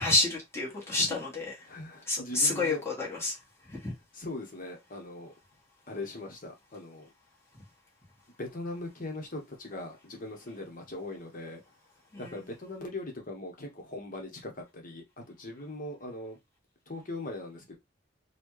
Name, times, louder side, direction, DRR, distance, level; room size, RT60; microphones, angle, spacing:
voice 1, 0.0-1.5 2.1-3.3 3.7-3.9 12.1-12.4, left 2 dB, 15° left, 1.6 m, -29 dB
voice 2, 0.7-1.2 1.7-2.8 4.1-5.3 5.9-7.1 8.4-11.6 12.2-16.4 16.9-17.8, left 2 dB, 50° left, 1.2 m, -40 dB
4.1 x 2.4 x 3.2 m
head